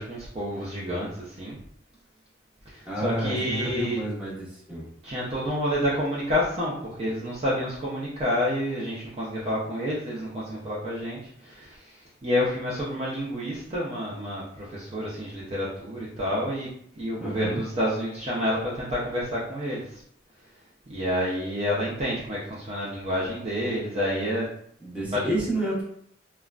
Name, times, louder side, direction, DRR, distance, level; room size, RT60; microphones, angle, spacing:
voice 1, 0.0-1.6 2.7-4.0 5.0-11.9 12.2-16.7 16.9-19.8 20.9-24.5 25.1-25.3, equal, 30° right, -7 dB, 0.6 m, -29 dB
voice 2, 2.9-4.8 17.2-17.6 24.8-25.8, right 1 dB, 5° right, -6 dB, 0.9 m, -30 dB
3.5 x 2.2 x 2.4 m, 0.66 s
head